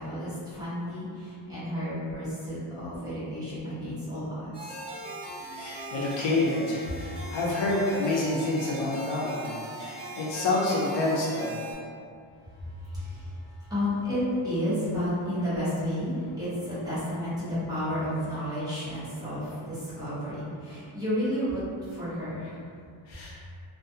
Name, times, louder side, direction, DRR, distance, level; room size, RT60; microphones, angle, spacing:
voice 1, 0.0-4.7 12.6-13.4 13.7-21.6 21.9-22.5, equal, 10° right, -13 dB, 0.8 m, -31 dB
sound 1, 4.5-11.7, right 1 dB, 60° right, 0.8 m, -40 dB
voice 2, 5.5-9.5 9.8-11.6 23.1-23.4, left 2 dB, 65° left, -5 dB, 0.5 m, -28 dB
2.3 x 2.2 x 2.6 m, 2.2 s
wide cardioid pair, 165°, 49 cm